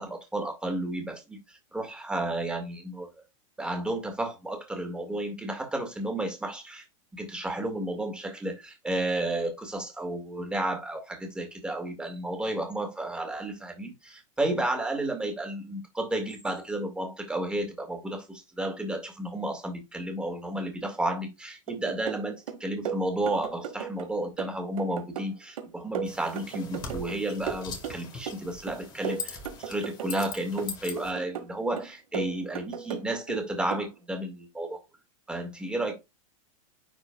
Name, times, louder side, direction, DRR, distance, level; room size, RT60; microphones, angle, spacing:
voice 1, 0.0-3.1 3.6-6.8 7.1-34.8 35.3-35.9, right 1 dB, 5° right, 1.9 m, -32 dB
sound 1, 21.7-22.2 22.5-24.1 24.4-27.2 27.5-28.4 28.7-30.3 30.6-31.5 31.8-33.4 33.7-33.9, right 8 dB, 85° right, 1.8 m, -36 dB
sound 2, 26.1-31.1, left 4 dB, 25° left, 1.8 m, -41 dB
10.0 x 4.3 x 2.3 m
supercardioid pair, 140°, 18 cm